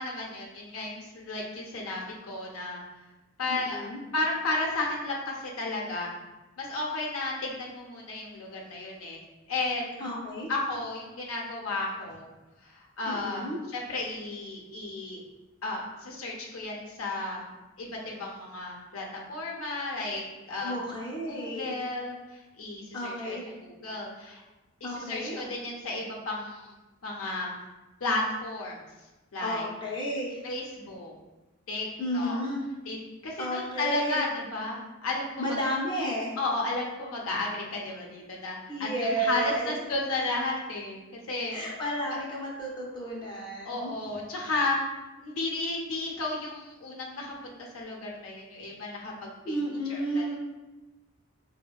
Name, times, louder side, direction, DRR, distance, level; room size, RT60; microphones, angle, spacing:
voice 1, 0.0-2.8 3.4-3.9 4.1-6.1 6.6-9.2 9.5-10.1 10.5-12.3 12.6-15.2 15.6-17.5 17.8-20.7 21.3-24.4 24.8-26.7 27.0-27.5 28.0-28.8 29.3-29.7 30.4-31.1 31.7-31.9 32.1-32.4 32.9-33.0 33.2-35.6 36.4-41.6 42.1-42.2 43.6-44.8 45.2-49.6 49.9-50.4, left 2 dB, 70° left, -1 dB, 0.6 m, -33 dB
voice 2, 3.5-4.0 10.0-10.5 13.1-13.6 20.6-21.7 22.9-23.5 24.8-25.4 29.4-30.4 32.0-32.6 33.4-34.2 35.4-36.4 38.7-39.8 41.5-43.9 49.4-50.4, equal, 20° left, -5 dB, 0.5 m, -32 dB
4.2 x 2.1 x 2.2 m, 1.1 s
head